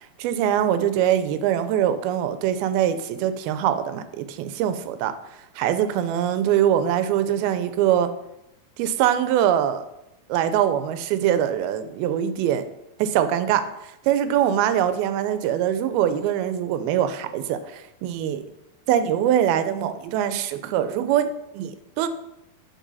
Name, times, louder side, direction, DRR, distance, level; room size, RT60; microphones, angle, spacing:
voice 1, 0.2-5.1 5.6-8.1 8.8-9.8 10.3-12.6 13.0-13.7 14.0-18.5 18.9-22.1, right 10 dB, 85° right, 11 dB, 2.6 m, -23 dB
10.0 x 6.6 x 4.1 m, 0.87 s
omnidirectional pair, 4.3 m